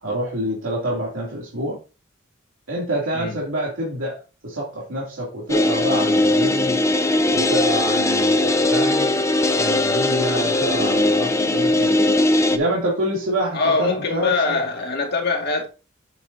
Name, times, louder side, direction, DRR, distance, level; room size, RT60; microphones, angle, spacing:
voice 1, 0.0-1.8 2.7-6.8 7.3-9.1 9.5-12.0 12.5-14.6, equal, 85° right, 2.7 m, -27 dB
sound 1, 5.5-12.6, left 1 dB, 15° left, 0.6 m, -19 dB
voice 2, 13.5-15.7, left 3 dB, 55° left, 1.9 m, -22 dB
9.1 x 7.1 x 2.7 m
head